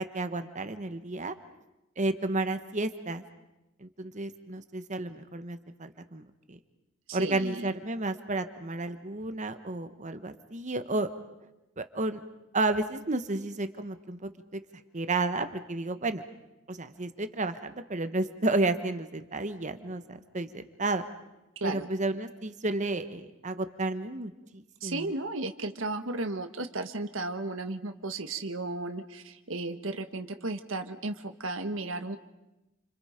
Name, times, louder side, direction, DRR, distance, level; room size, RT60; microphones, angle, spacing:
voice 1, 0.0-1.3 2.0-3.2 3.8-6.6 7.1-11.1 11.8-12.2 12.5-14.6 14.9-16.2 16.7-21.0 21.6-25.1, right 2 dB, 35° right, 9 dB, 1.2 m, -32 dB
voice 2, 7.1-7.7 21.6-21.9 24.8-32.2, right 2 dB, 70° right, 7 dB, 1.5 m, -34 dB
29.0 x 27.0 x 5.2 m, 0.94 s
head